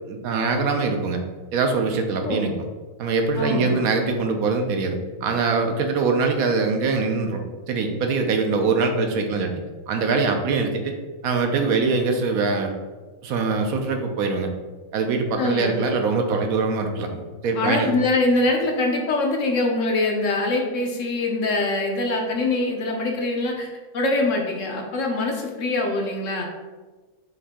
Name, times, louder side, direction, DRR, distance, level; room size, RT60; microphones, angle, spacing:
voice 1, 0.1-1.2 1.5-2.7 3.0-9.5 9.9-10.9 11.2-12.7 13.2-14.5 14.9-17.9, right 4 dB, 75° right, 4 dB, 1.0 m, -23 dB
voice 2, 3.4-3.8 15.4-15.9 17.6-23.7 23.9-26.5, left 2 dB, 65° left, 1 dB, 1.0 m, -23 dB
5.7 x 2.6 x 3.5 m, 1.3 s
omnidirectional pair, 1.6 m